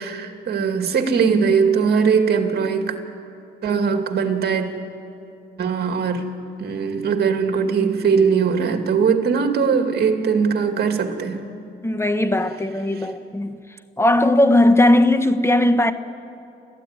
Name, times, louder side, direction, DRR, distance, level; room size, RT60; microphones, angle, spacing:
voice 1, 0.0-2.9 3.6-4.8 5.6-6.3 6.6-11.5 12.9-13.1, right 6 dB, 55° right, 2.4 m, -20 dB
voice 2, 11.8-13.6 14.0-15.9, left 1 dB, 15° left, 1.2 m, -17 dB
29.0 x 13.5 x 9.7 m
cardioid pair, 90°, 20 cm